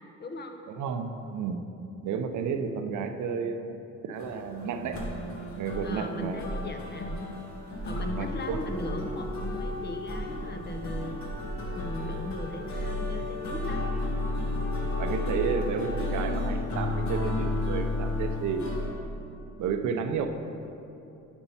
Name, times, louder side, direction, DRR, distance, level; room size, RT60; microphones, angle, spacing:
voice 1, 0.2-0.6 5.8-7.3 7.8-11.2 11.7-13.8, left 1 dB, 35° left, 5 dB, 0.8 m, -38 dB
voice 2, 0.8-1.6 2.0-5.0 5.5-6.5 8.2-8.6 15.0-18.6 19.6-20.3, right 6 dB, 75° right, 6 dB, 0.7 m, -32 dB
sound 1, 4.1-18.9, left 2 dB, 65° left, 1.7 m, -32 dB
7.2 x 5.4 x 5.6 m, 2.8 s
cardioid pair, 90°, 30 cm